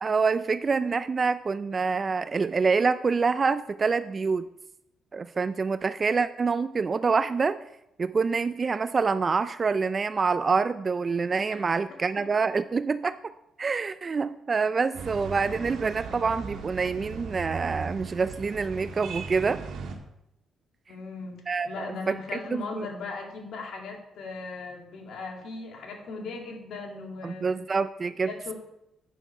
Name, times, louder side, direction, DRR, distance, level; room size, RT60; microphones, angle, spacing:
voice 1, 0.0-4.5 5.1-7.6 8.0-13.2 13.6-19.6 21.5-22.2 22.5-22.9 27.2-28.5, right 4 dB, 35° right, 13 dB, 0.3 m, -26 dB
sound 1, 14.9-20.0, right 5 dB, 75° right, 1.4 m, -38 dB
voice 2, 20.9-27.5 28.2-28.5, left 3 dB, 70° left, 1 dB, 2.3 m, -38 dB
9.1 x 6.5 x 5.3 m, 0.85 s
cardioid pair, 90°, 0 cm